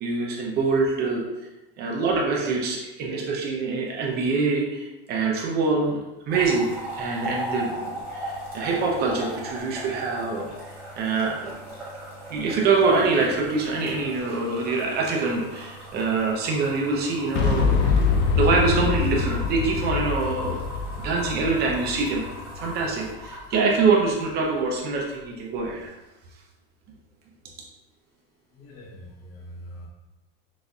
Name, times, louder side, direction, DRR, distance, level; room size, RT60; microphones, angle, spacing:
voice 1, 0.0-1.2 1.8-6.0 6.3-10.5 11.0-11.6 12.3-18.0 18.3-20.6 21.0-22.2 22.6-25.9, right 4 dB, 30° right, -1 dB, 0.7 m, -25 dB
sound 1, 6.3-25.2 25.5-25.9, right 1 dB, 5° right, 1.5 m, -38 dB
Boom, 17.4-23.2, left 5 dB, 35° left, 0.4 m, -25 dB
voice 2, 28.5-29.9, equal, 75° left, -3 dB, 1.5 m, -43 dB
6.1 x 2.6 x 2.3 m, 1.0 s
supercardioid pair, 155°, 30 cm